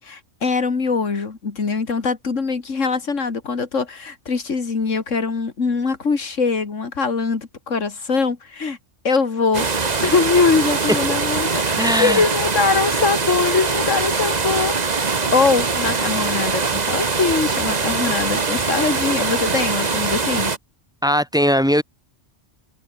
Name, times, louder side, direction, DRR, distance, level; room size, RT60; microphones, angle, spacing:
voice 1, 0.0-8.8 9.0-20.5, left 4 dB, 85° left, 2.6 m, -22 dB
sound 1, 9.5-20.6, right 4 dB, 35° right, 1.4 m, -22 dB
voice 2, 11.8-12.2 21.0-21.8, equal, 5° right, 5.6 m, -18 dB
omnidirectional pair, 1.3 m